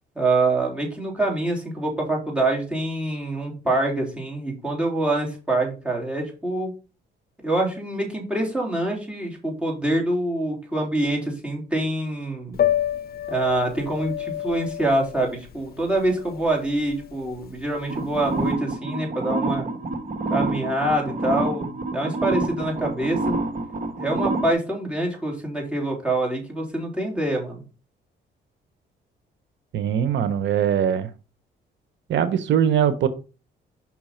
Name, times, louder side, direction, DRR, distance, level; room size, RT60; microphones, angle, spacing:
voice 1, 0.2-6.7 7.4-12.6 13.3-19.6 20.3-23.4 24.0-27.6, right 2 dB, 5° right, -2 dB, 3.3 m, -25 dB
Piano, 12.5-18.5, left 11 dB, 50° left, 0.7 m, -29 dB
sound 1, 17.9-24.5, right 2 dB, 40° right, 1.3 m, -27 dB
voice 2, 29.7-31.1 32.1-33.1, right 9 dB, 70° right, 12 dB, 0.7 m, -21 dB
6.0 x 5.6 x 4.3 m, 0.33 s
cardioid pair, 90°, 20 cm